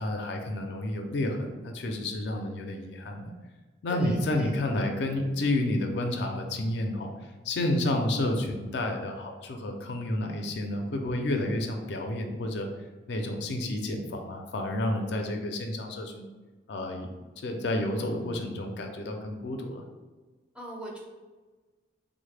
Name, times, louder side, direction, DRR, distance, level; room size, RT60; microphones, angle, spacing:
voice 1, 0.0-3.3 3.8-7.1 7.4-12.7 13.1-16.3 16.7-17.1 17.4-19.8, left 1 dB, 65° left, 3 dB, 0.4 m, -30 dB
voice 2, 3.9-4.5 20.6-21.0, right 1 dB, 5° right, -2 dB, 0.4 m, -40 dB
3.4 x 2.0 x 3.2 m, 1.3 s
head